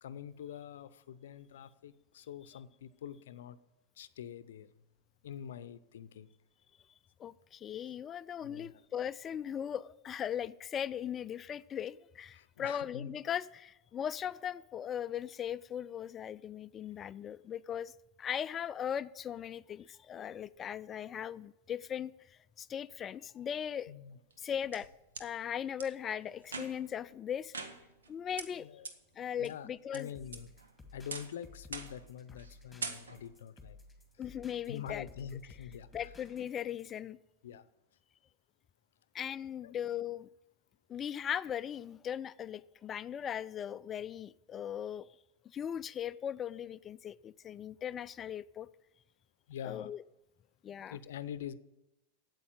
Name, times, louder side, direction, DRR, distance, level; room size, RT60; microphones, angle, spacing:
voice 1, 0.0-3.6 4.0-4.7 5.2-6.3 8.4-8.7 12.3-13.1 23.9-24.2 28.5-28.9 29.4-30.5 30.9-33.8 34.7-36.1 37.4-37.6 39.6-39.7 49.5-49.9 50.9-51.5, left 9 dB, 75° left, 0.6 m, -45 dB
voice 2, 7.2-17.9 18.2-23.9 24.4-24.9 25.2-27.7 28.1-28.7 29.2-30.1 34.2-35.1 35.9-37.2 39.1-40.3 40.9-45.1 45.4-48.7 49.6-50.0 50.6-51.0, left 9 dB, 30° left, 0.3 m, -39 dB
sound 1, 24.3-25.3 25.8-25.9 26.4-27.0 27.5-28.1 28.4-28.5 28.9-29.0 29.4-30.0 30.3-30.7 31.1-31.4 31.7-32.1 32.4-32.5 32.8-33.4, right 4 dB, 85° right, 1.0 m, -43 dB
sound 2, 30.1-37.0, left 3 dB, 5° left, 2.3 m, -55 dB
8.5 x 8.1 x 9.0 m
hypercardioid pair, 95°, 0 cm